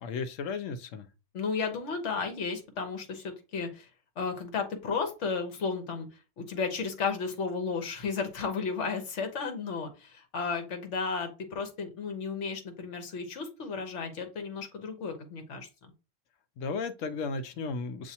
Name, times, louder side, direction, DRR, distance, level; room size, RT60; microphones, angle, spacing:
voice 1, 0.0-1.0 16.6-18.1, left 4 dB, 85° left, 1.0 m, -34 dB
voice 2, 1.3-3.9 4.2-6.1 6.4-15.7, left 5 dB, 70° left, 1.3 m, -33 dB
7.0 x 2.7 x 2.8 m
omnidirectional pair, 1.3 m